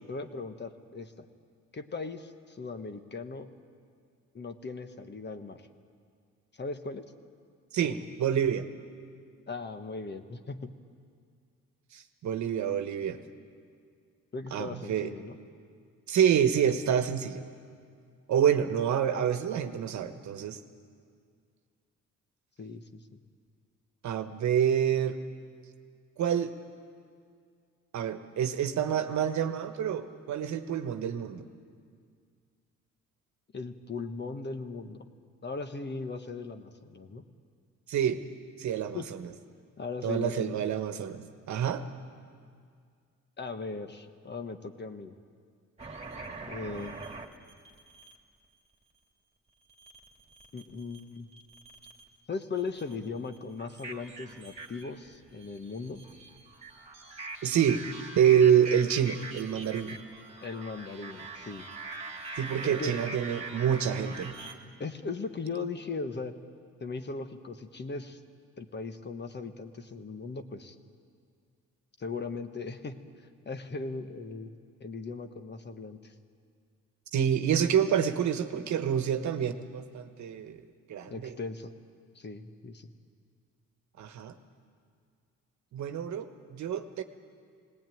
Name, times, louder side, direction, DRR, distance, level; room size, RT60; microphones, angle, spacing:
voice 1, 0.1-1.3 1.7-3.5 4.3-5.6 6.6-7.1 7.8-8.0 9.5-10.7 14.3-15.4 22.6-23.0 33.5-35.1 35.4-37.2 38.9-39.1 39.8-40.7 43.4-45.2 46.5-47.1 50.5-51.3 52.3-56.0 60.4-61.7 62.6-63.0 64.8-66.4 66.8-68.2 68.6-70.7 72.0-73.0 73.4-76.1 81.1-81.7 82.1-82.9, left 4 dB, 35° left, 8 dB, 1.4 m, -38 dB
voice 2, 7.7-8.7 11.9-13.2 14.5-15.1 16.1-17.4 18.3-20.6 24.0-25.2 26.2-26.5 27.9-31.5 37.9-38.2 38.6-39.3 40.0-41.8 57.4-57.8 58.2-60.0 62.4-64.3 77.1-80.6 80.9-81.3 84.0-84.3 85.7-87.0, right 9 dB, 70° right, 8 dB, 1.3 m, -27 dB
sound 1, 45.8-48.2 49.7-51.0 51.3-52.2 52.6-64.5, right 3 dB, 20° right, 2.4 m, -43 dB
19.5 x 18.5 x 9.3 m, 2.1 s
cardioid pair, 90°, 30 cm